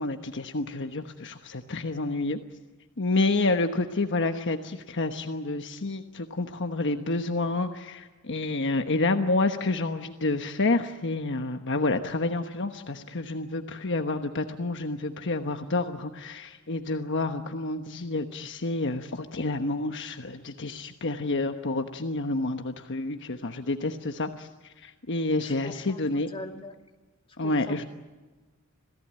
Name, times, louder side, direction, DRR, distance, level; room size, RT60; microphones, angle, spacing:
voice 1, 0.0-2.4 3.0-26.3 27.4-27.8, left 2 dB, 55° left, 6 dB, 1.2 m, -29 dB
voice 2, 25.4-26.7 27.4-27.9, left 1 dB, 25° left, 3 dB, 2.4 m, -41 dB
27.0 x 17.5 x 8.9 m, 1.2 s
head